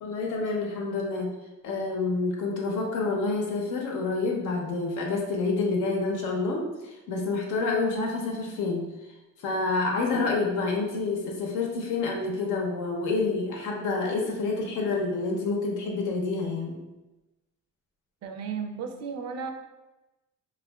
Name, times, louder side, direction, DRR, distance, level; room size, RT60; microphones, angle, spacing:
voice 1, 0.0-1.3 1.6-6.6 7.1-8.9 9.4-16.8, left 3 dB, 85° left, 0 dB, 0.7 m, -28 dB
voice 2, 18.2-19.5, right 6 dB, 60° right, 5 dB, 0.4 m, -34 dB
3.3 x 2.3 x 2.2 m, 1.0 s
cardioid pair, 90°, 30 cm